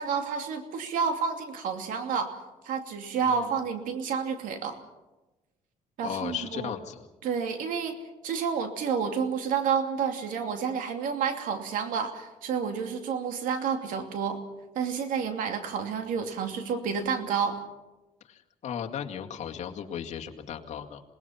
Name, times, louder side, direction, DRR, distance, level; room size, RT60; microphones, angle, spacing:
voice 1, 0.0-2.4 2.6-4.8 6.0-6.7 7.2-7.9 8.2-14.4 14.7-17.6, right 6 dB, 80° right, 6 dB, 2.7 m, -30 dB
voice 2, 3.2-3.6 6.0-7.1 18.2-21.0, left 8 dB, 60° left, 2 dB, 2.1 m, -36 dB
27.0 x 19.5 x 5.8 m, 1.1 s
cardioid pair, 120°, 14 cm